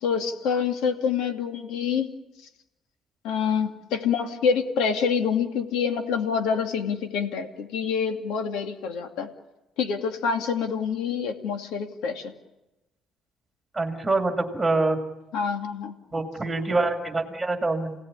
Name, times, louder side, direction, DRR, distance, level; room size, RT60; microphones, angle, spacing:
voice 1, 0.0-2.1 3.2-9.3 9.8-12.3 15.3-15.9, left 6 dB, 85° left, 5 dB, 2.5 m, -26 dB
voice 2, 13.7-15.0 16.1-18.0, right 2 dB, 5° right, 4 dB, 2.3 m, -25 dB
28.5 x 18.0 x 9.7 m, 0.99 s
cardioid pair, 165°, 0 cm